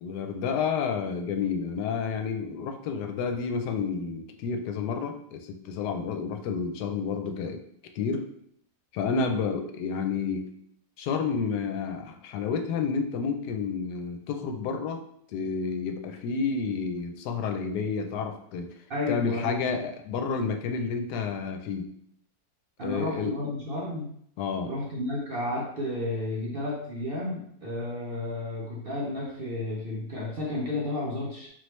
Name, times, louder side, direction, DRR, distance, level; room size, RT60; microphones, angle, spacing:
voice 1, 0.0-7.6 7.9-8.3 8.9-10.5 11.0-15.0 15.3-18.7 19.1-21.9 22.8-23.3 24.4-24.7, left 5 dB, 85° left, 5 dB, 1.2 m, -30 dB
voice 2, 18.9-19.7 22.8-24.1 24.6-31.5, left 1 dB, 55° right, -4 dB, 0.6 m, -32 dB
4.1 x 3.1 x 3.1 m, 0.67 s
omnidirectional pair, 1.7 m